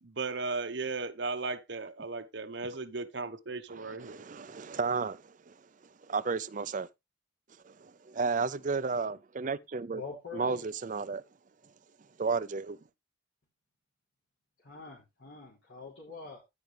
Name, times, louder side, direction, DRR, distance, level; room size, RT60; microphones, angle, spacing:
voice 1, 0.0-4.2, right 3 dB, 70° right, 1.1 m, -36 dB
voice 2, 3.7-5.5 6.1-6.9 7.6-10.0 10.3-11.2 12.2-12.8, right 4 dB, 45° right, 0.5 m, -33 dB
voice 3, 9.9-10.7 14.6-16.4, left 5 dB, 75° left, 3.5 m, -45 dB
15.5 x 5.1 x 3.4 m
head